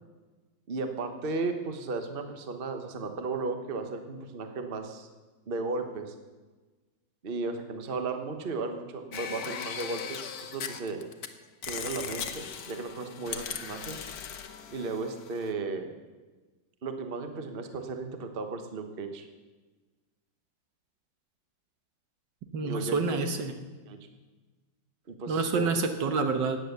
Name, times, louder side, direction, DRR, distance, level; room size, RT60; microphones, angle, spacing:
voice 1, 0.7-5.1 5.5-6.1 7.2-11.0 11.7-14.0 14.7-15.9 16.8-19.3 22.6-23.2 23.9-24.0 25.2-25.7, right 3 dB, 35° right, 6 dB, 1.2 m, -35 dB
sound 1, 9.1-11.3 11.6-15.5, left 7 dB, 55° left, 1.3 m, -39 dB
voice 2, 22.5-23.6 25.3-26.6, right 4 dB, 65° right, 6 dB, 1.8 m, -28 dB
15.5 x 9.9 x 6.8 m, 1.3 s
omnidirectional pair, 2.1 m